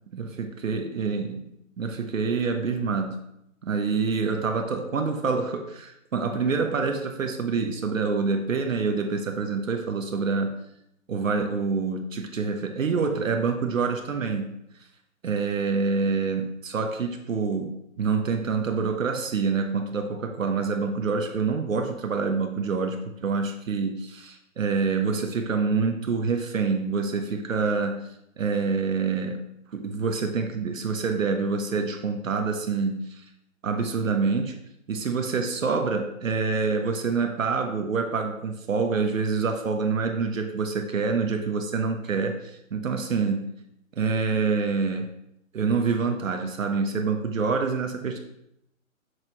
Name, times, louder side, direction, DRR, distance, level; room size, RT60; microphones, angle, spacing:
voice 1, 0.1-1.4 1.8-3.2 3.6-10.6 11.1-14.6 15.2-28.1 28.4-29.4 29.7-33.2 33.6-34.6 34.9-43.5 44.0-45.1 45.5-48.2, right 4 dB, 70° right, 4 dB, 1.0 m, -26 dB
7.8 x 5.9 x 2.9 m, 0.80 s
figure-of-eight pair, 145°, 41 cm